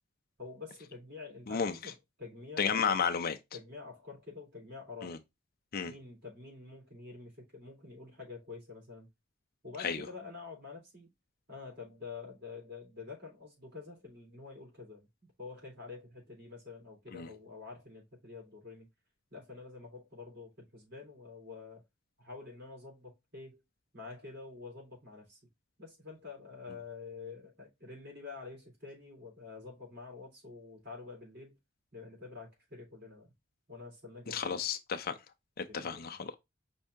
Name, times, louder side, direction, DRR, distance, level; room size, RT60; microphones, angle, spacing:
voice 1, 0.4-2.9 3.5-5.2 5.8-9.1 9.6-11.1 11.5-15.1 15.4-18.9 19.3-21.8 22.2-23.6 23.9-25.4 25.8-31.6 31.9-33.3 33.7-34.6 35.7-36.0, left 4 dB, 55° right, 3.4 m, -47 dB
voice 2, 1.5-1.9 2.6-3.4 5.0-5.2 5.7-5.9 9.8-10.1 17.1-17.3 34.3-35.2 35.6-36.4, left 6 dB, 50° left, 0.5 m, -32 dB
5.5 x 2.7 x 3.5 m
head